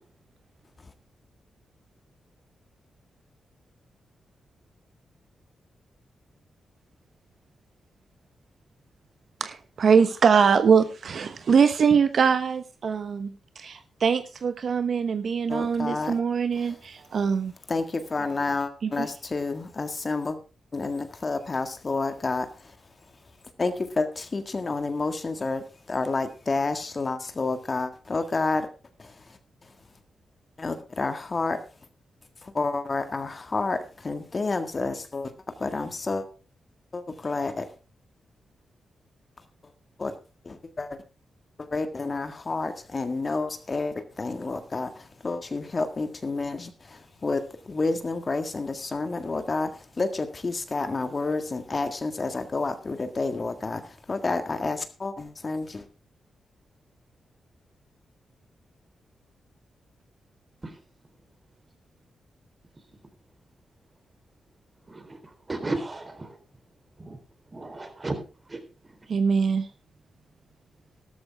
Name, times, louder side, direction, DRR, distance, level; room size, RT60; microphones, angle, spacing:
voice 1, 9.4-17.5 18.8-19.1 69.1-69.7, right 6 dB, 65° right, 1.0 m, -23 dB
voice 2, 15.5-16.2 16.6-16.7 17.7-20.4 20.7-22.5 23.6-28.7 30.6-31.6 32.4-35.3 35.6-36.3 36.9-37.6 40.0-40.1 40.5-41.0 41.7-44.9 45.2-47.4 47.7-49.7 50.0-53.8 54.1-55.8, left 3 dB, 40° left, 1.7 m, -29 dB
voice 3, 64.9-65.2 65.5-66.4 67.0-67.2 67.5-68.2 68.5-68.6, right 2 dB, 30° right, 3.7 m, -33 dB
13.0 x 13.0 x 3.5 m
cardioid pair, 60°, 0 cm